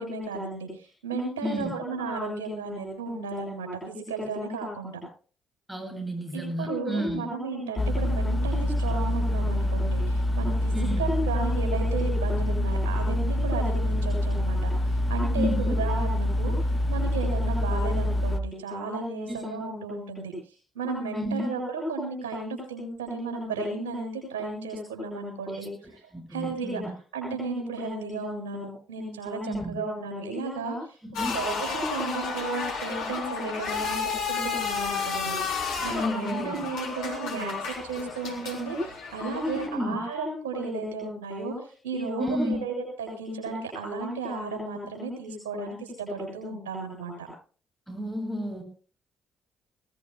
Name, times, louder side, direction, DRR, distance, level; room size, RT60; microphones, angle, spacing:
voice 1, 0.0-5.0 6.3-20.3 20.7-26.8 27.1-31.0 31.3-47.3, right 3 dB, 85° right, 1 dB, 7.8 m, -33 dB
voice 2, 1.4-1.7 4.2-4.3 5.7-7.2 10.7-11.0 15.3-15.8 19.3-19.4 21.1-21.5 25.5-25.6 26.1-26.9 29.5-29.8 31.2-31.3 36.0-36.6 39.4-40.0 42.2-42.6 47.9-48.6, equal, 10° right, 2 dB, 8.0 m, -31 dB
sound 1, 7.8-18.4, left 1 dB, 25° left, 1.1 m, -26 dB
sound 2, 31.1-39.7, left 5 dB, 70° left, 3.8 m, -32 dB
24.0 x 18.5 x 2.3 m, 0.40 s
hypercardioid pair, 45°, 0 cm